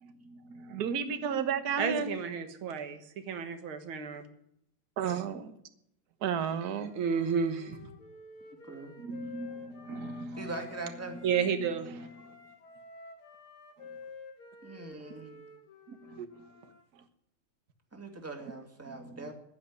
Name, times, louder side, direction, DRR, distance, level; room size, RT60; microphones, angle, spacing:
voice 1, 0.0-2.1 5.0-5.6 6.2-6.9 9.0-10.5 11.0-12.4 15.9-16.5 16.9-17.0 18.8-19.3, right 6 dB, 50° right, 10 dB, 1.5 m, -35 dB
voice 2, 1.8-4.2 5.0-5.2 7.0-7.9 11.2-11.9, right 6 dB, 70° right, 8 dB, 2.2 m, -31 dB
Wind instrument woodwind instrument, 6.8-11.4 12.0-16.8, left 3 dB, 75° left, 3.1 m, -50 dB
voice 3, 10.4-11.2 14.6-15.4 17.9-19.3, right 2 dB, 5° right, 3 dB, 2.0 m, -41 dB
10.5 x 10.0 x 9.7 m, 0.76 s
omnidirectional pair, 2.4 m